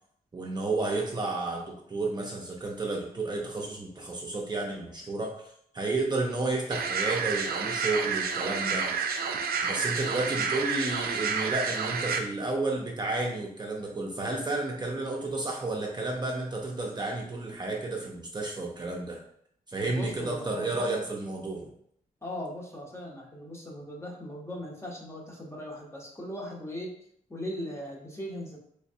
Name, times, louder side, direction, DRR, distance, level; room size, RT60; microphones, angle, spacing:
voice 1, 0.3-5.3 5.7-8.9 9.6-19.2 19.7-21.7, right 2 dB, 30° right, -1 dB, 0.5 m, -31 dB
sound 1, 6.7-12.2, right 5 dB, 85° right, 0.4 m, -30 dB
voice 2, 19.8-21.0 22.2-27.0 27.3-28.6, left 1 dB, 15° left, -1 dB, 0.8 m, -39 dB
3.2 x 3.1 x 2.7 m, 0.67 s
cardioid pair, 85°, 15 cm